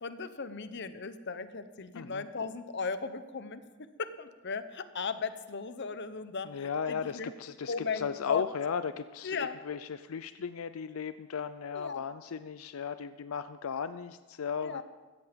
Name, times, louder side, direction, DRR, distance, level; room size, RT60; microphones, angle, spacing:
voice 1, 0.0-3.6 4.0-7.3 7.7-8.4 9.2-9.6 11.7-12.0 14.6-14.8, left 5 dB, 55° left, 12 dB, 0.9 m, -36 dB
voice 2, 1.9-2.2 6.4-14.8, left 6 dB, 85° left, 12 dB, 0.5 m, -36 dB
16.0 x 14.0 x 5.2 m, 1.3 s
head